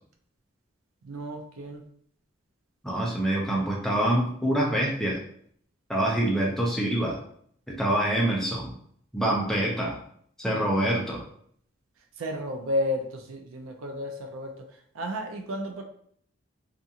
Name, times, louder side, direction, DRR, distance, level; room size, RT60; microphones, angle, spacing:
voice 1, 1.0-1.8 12.2-15.8, left 1 dB, 85° right, 4 dB, 0.5 m, -32 dB
voice 2, 2.8-5.2 5.9-7.2 7.7-8.7 9.1-10.0 10.4-11.2, right 1 dB, ahead, -3 dB, 0.5 m, -25 dB
2.4 x 2.4 x 2.7 m, 0.63 s
head